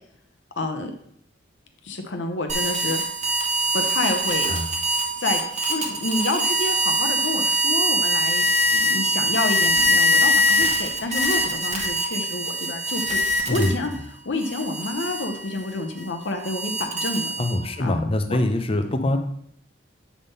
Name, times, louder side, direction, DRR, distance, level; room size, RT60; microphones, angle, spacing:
voice 1, 0.6-0.9 1.8-3.0 3.7-4.5 5.2-8.4 8.7-16.7 17.0-17.3 17.8-18.0 18.3-18.4, left 2 dB, 60° left, 5 dB, 0.8 m, -29 dB
sound 1, 2.5-14.0 14.4-17.8, equal, 35° right, 1.2 m, -23 dB
voice 2, 17.4-19.2, left 1 dB, 30° left, 6 dB, 0.6 m, -23 dB
8.4 x 3.6 x 5.4 m, 0.69 s
head